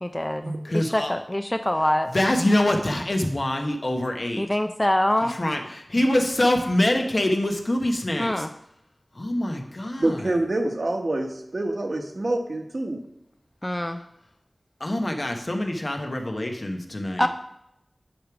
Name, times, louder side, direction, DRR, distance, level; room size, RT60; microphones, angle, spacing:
voice 1, 0.0-2.1 4.4-5.3 8.2-8.5 13.6-14.0 17.2-17.3, left 1 dB, 20° left, 7 dB, 0.4 m, -24 dB
voice 2, 0.6-1.1 2.1-4.4 5.2-5.6 5.9-8.5 9.1-10.4 14.8-17.3, left 1 dB, 50° left, 3 dB, 1.1 m, -24 dB
voice 3, 10.0-13.0, right 2 dB, 65° right, 3 dB, 1.1 m, -26 dB
10.0 x 3.4 x 5.9 m, 0.80 s
wide cardioid pair, 65°, 0 cm